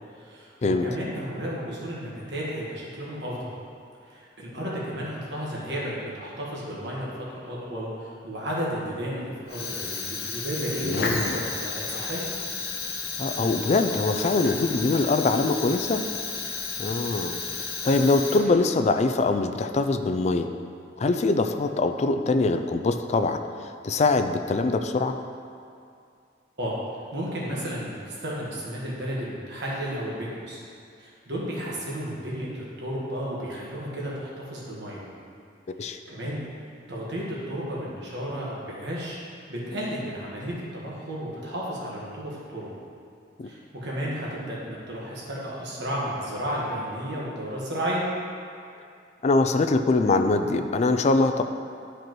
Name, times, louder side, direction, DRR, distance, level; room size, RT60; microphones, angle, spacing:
voice 1, 0.1-3.5 4.0-12.2 26.6-26.7 27.1-30.6 31.0-35.0 36.1-36.4 36.9-42.7 43.4-48.0, equal, 70° right, -5 dB, 1.4 m, -33 dB
Fire, 9.5-18.8, left 4 dB, 60° left, 0.9 m, -32 dB
voice 2, 10.8-11.4 13.2-16.0 16.8-20.5 21.0-25.2 35.8-36.0 43.4-43.5 49.2-51.4, left 3 dB, 40° left, 7 dB, 0.4 m, -23 dB
11.0 x 5.0 x 3.0 m, 2.4 s
head